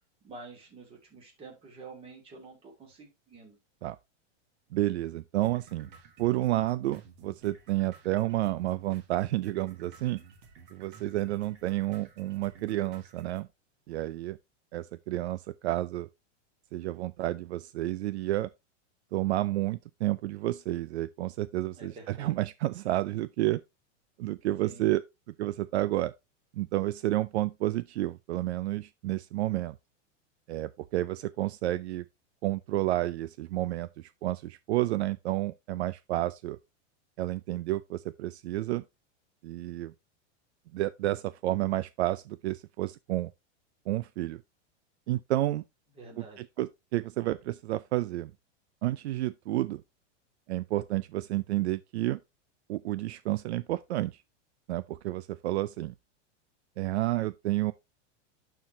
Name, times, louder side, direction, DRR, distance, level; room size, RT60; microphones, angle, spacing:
voice 1, 0.2-3.6 21.7-22.3 24.6-24.9 45.9-46.4, right 3 dB, 15° right, 2.5 m, -48 dB
voice 2, 4.7-5.9 6.2-10.2 10.7-13.5 13.9-14.4 14.7-16.1 16.7-18.5 19.1-23.6 24.2-25.0 25.4-26.1 26.5-29.8 30.5-32.0 32.4-36.6 37.2-38.8 39.4-39.9 40.7-43.3 43.9-44.4 45.1-45.6 46.2-48.3 48.8-49.8 50.5-52.2 52.7-54.2 54.7-55.9 56.8-57.7, right 16 dB, 65° right, 0.5 m, -30 dB
sound 1, 5.4-13.4, right 5 dB, 45° right, 2.1 m, -53 dB
11.5 x 4.7 x 3.1 m
supercardioid pair, 175°, 37 cm